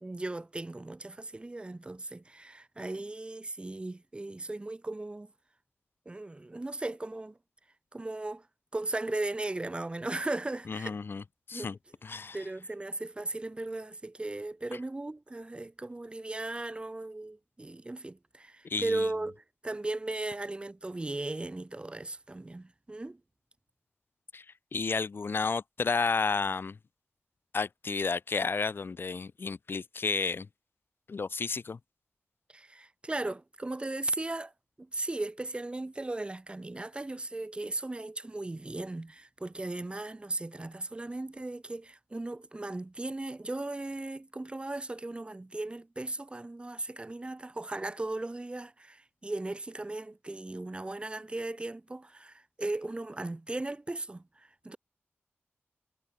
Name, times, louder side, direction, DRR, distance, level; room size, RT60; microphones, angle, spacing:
voice 1, 0.0-5.3 6.0-7.4 7.9-8.4 8.7-11.0 11.5-11.7 12.3-23.2 32.5-34.5 34.8-54.8, right 2 dB, 25° right, 1.2 m, -37 dB
voice 2, 10.7-11.2 11.5-11.8 12.0-12.4 18.7-19.0 24.3-24.4 24.7-26.8 27.5-30.5 31.1-31.8, left 4 dB, 55° left, 0.8 m, -31 dB
wide cardioid pair, 115°, 4 cm